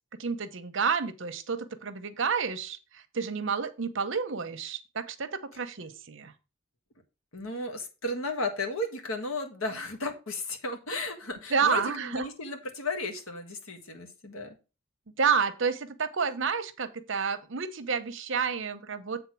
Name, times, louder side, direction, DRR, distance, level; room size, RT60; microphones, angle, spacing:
voice 1, 0.2-6.3 11.5-12.3 15.2-19.2, right 5 dB, 65° right, 10 dB, 0.8 m, -30 dB
voice 2, 7.3-14.6, left 2 dB, 90° left, 5 dB, 1.7 m, -34 dB
8.0 x 3.7 x 5.9 m, 0.31 s
head